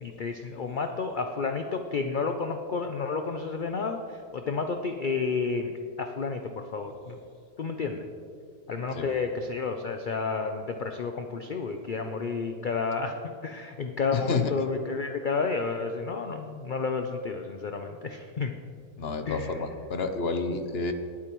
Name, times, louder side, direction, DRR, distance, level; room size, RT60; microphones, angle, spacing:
voice 1, 0.0-5.7 6.0-7.2 7.6-8.1 8.7-18.5 19.3-19.6 20.5-20.6, left 4 dB, 70° left, 6 dB, 0.4 m, -31 dB
voice 2, 14.1-14.5 19.0-20.9, left 4 dB, 50° left, 7 dB, 0.9 m, -29 dB
19.5 x 8.4 x 3.0 m, 2.3 s
omnidirectional pair, 1.6 m